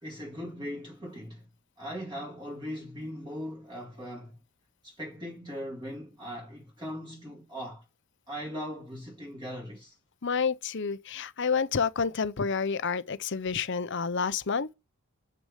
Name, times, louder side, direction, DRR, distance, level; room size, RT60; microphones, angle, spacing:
voice 1, 0.0-1.5 1.8-4.4 4.8-7.8 8.3-10.0, equal, 20° right, 2.1 m, -39 dB
voice 2, 10.2-14.7, left 5 dB, 55° left, 0.7 m, -29 dB
7.9 x 6.3 x 6.5 m
head